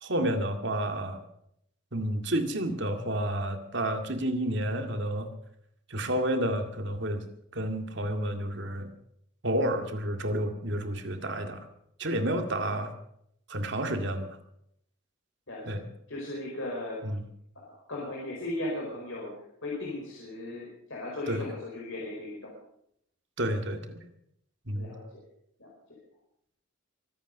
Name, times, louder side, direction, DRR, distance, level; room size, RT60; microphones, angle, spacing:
voice 1, 0.0-1.2 1.9-5.3 5.9-7.2 7.5-8.9 9.4-11.7 12.0-12.9 13.5-14.3 15.7-15.8 17.0-17.2 21.3-21.5 23.4-24.0 24.7-24.9, right 1 dB, 55° right, 6 dB, 2.1 m, -30 dB
voice 2, 15.5-15.8 16.1-17.0 17.5-19.3 19.6-22.5 24.7-25.2 25.6-25.7, left 2 dB, 60° left, -3 dB, 4.7 m, -37 dB
24.0 x 9.2 x 6.6 m, 0.74 s
head